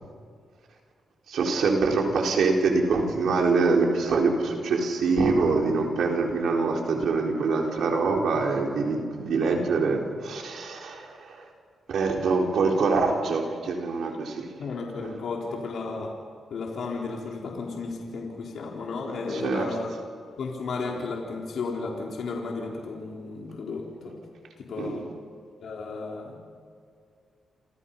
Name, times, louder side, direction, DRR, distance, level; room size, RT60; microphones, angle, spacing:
voice 1, 1.3-11.4 11.9-14.5 19.3-19.7 24.8-25.0, right 4 dB, 80° right, 1 dB, 4.4 m, -24 dB
voice 2, 14.6-16.2 16.5-19.9 20.4-24.1 24.6-25.1 25.6-26.4, left 4 dB, 70° left, -1 dB, 4.0 m, -33 dB
28.5 x 28.0 x 5.7 m, 2.1 s
cardioid pair, 85°, 0 cm